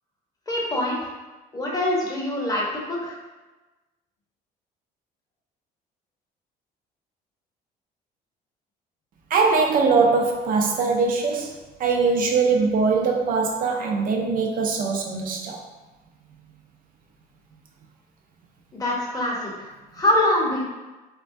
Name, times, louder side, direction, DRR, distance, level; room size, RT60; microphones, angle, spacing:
voice 1, 0.5-1.1 1.5-3.2 18.7-20.6, left 1 dB, 20° left, -3 dB, 0.8 m, -24 dB
voice 2, 9.3-15.6, right 4 dB, 55° right, 2 dB, 0.5 m, -22 dB
3.1 x 2.2 x 2.6 m, 1.2 s
cardioid pair, 110°, 17 cm